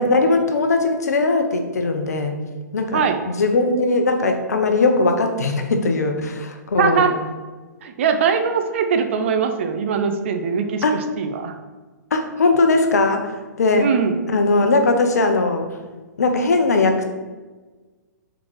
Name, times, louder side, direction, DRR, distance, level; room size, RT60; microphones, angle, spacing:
voice 1, 0.0-2.4 2.7-3.0 3.4-7.1 10.8-11.0 12.1-13.3 13.6-13.9 14.3-15.7 16.2-17.0, left 3 dB, 60° left, 5 dB, 0.8 m, -19 dB
voice 2, 6.8-7.2 7.8-11.5 13.8-14.2, right 6 dB, 40° right, 6 dB, 0.6 m, -21 dB
5.9 x 4.0 x 4.6 m, 1.3 s
figure-of-eight pair, 120°, 10 cm